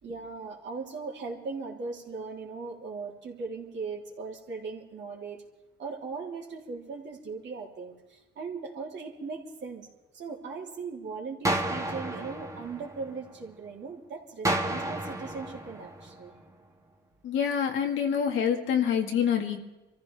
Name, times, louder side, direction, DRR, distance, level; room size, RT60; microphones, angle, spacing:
voice 1, 0.0-5.4 5.8-9.9 10.1-16.3, right 4 dB, 65° right, -1 dB, 3.3 m, -39 dB
sound 1, 11.4-13.5 14.4-16.5, right 1 dB, 15° right, 1.6 m, -32 dB
voice 2, 17.2-19.6, left 8 dB, 80° left, 3 dB, 1.9 m, -26 dB
25.5 x 14.5 x 3.5 m, 1.1 s
cardioid pair, 90°, 20 cm